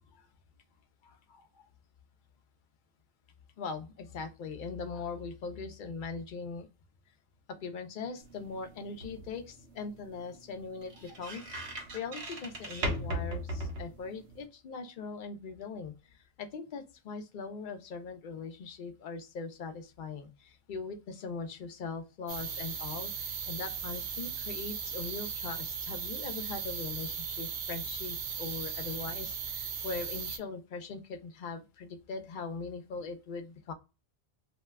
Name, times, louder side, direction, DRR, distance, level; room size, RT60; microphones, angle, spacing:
voice 1, 1.0-1.7 3.6-6.7 7.6-33.7, left 4 dB, 55° left, 7 dB, 0.7 m, -41 dB
sound 1, 8.2-14.4, right 1 dB, 85° right, 1.1 m, -39 dB
sound 2, 22.3-30.4, right 6 dB, 55° right, 0.6 m, -37 dB
2.9 x 2.2 x 3.2 m, 0.29 s
omnidirectional pair, 1.1 m